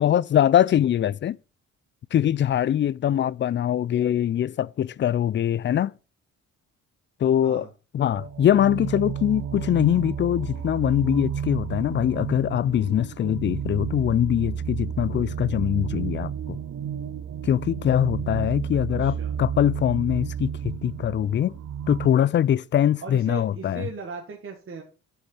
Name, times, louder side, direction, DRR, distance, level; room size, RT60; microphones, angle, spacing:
voice 1, 0.0-1.4 2.1-5.9 7.2-7.7 7.9-16.6 17.4-21.5 21.9-23.8, left 10 dB, 40° left, 0.4 m, -23 dB
sound 1, 8.1-22.1, right 8 dB, 60° right, 0.9 m, -32 dB
voice 2, 19.0-19.3 23.0-24.8, right 5 dB, 45° right, 1.8 m, -37 dB
7.3 x 7.0 x 5.4 m
cardioid pair, 90°, 30 cm